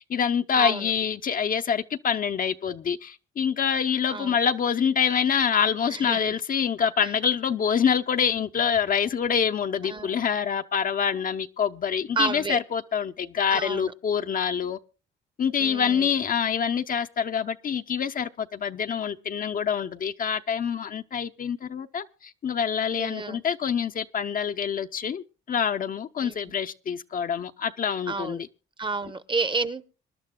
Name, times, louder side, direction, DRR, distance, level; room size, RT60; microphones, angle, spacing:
voice 1, 0.0-14.8 15.4-28.5, left 7 dB, 45° left, 0.6 m, -26 dB
voice 2, 0.5-0.9 4.1-4.4 5.9-6.3 7.0-7.1 9.8-10.2 12.2-12.6 13.5-13.9 15.6-16.1 23.0-23.4 26.2-26.3 28.1-28.4 28.8-29.8, right 3 dB, 25° right, 0.8 m, -30 dB
26.5 x 11.5 x 2.2 m
cardioid pair, 90°, 20 cm